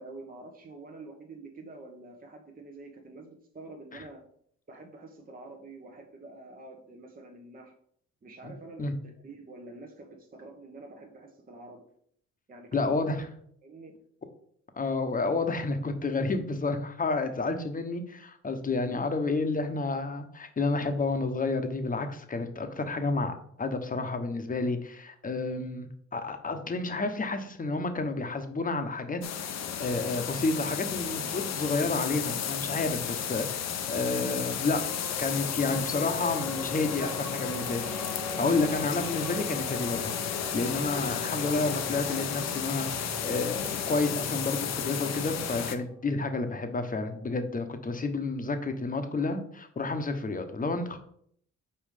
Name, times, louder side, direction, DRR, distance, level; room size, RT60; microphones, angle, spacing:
voice 1, 0.0-4.2 4.7-7.7 8.2-11.9 12.5-13.0 13.6-13.9, right 2 dB, 30° right, 2 dB, 1.0 m, -47 dB
voice 2, 12.7-13.3 14.8-29.2 29.5-34.8 35.2-38.0 38.4-40.1 40.5-42.9 43.2-51.0, left 3 dB, 25° left, 7 dB, 1.0 m, -30 dB
sound 1, 29.2-45.7, left 8 dB, 60° left, 0.8 m, -33 dB
sound 2, 34.7-47.5, right 1 dB, 5° right, 0.4 m, -43 dB
5.5 x 4.5 x 5.0 m, 0.65 s
cardioid pair, 90°, 30 cm